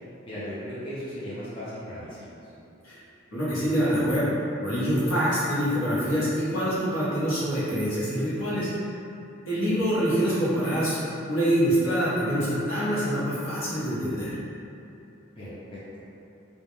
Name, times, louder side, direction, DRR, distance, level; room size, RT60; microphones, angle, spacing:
voice 1, 0.2-2.2 2.4-2.5 15.4-15.8, equal, 25° left, -11 dB, 0.5 m, -37 dB
voice 2, 3.3-4.3 4.6-8.7 9.4-11.0 11.3-14.4, equal, 85° left, -10 dB, 0.8 m, -25 dB
2.1 x 2.1 x 3.0 m, 2.7 s
head